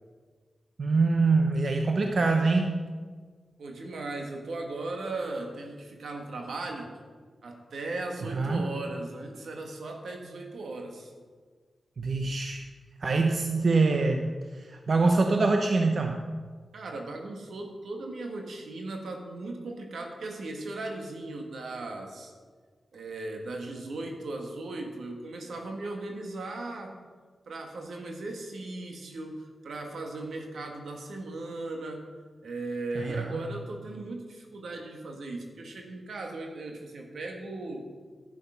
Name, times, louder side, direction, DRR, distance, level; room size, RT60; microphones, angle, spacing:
voice 1, 0.8-2.8 8.3-8.7 12.0-12.7 13.0-16.2 32.9-33.4, right 3 dB, 60° right, 4 dB, 0.9 m, -25 dB
voice 2, 3.6-7.0 7.4-11.1 16.7-22.3 22.9-27.0 27.5-32.1 32.4-37.9, right 2 dB, 85° right, 2 dB, 1.8 m, -37 dB
11.0 x 9.1 x 5.8 m, 1.5 s
cardioid pair, 70°, 0 cm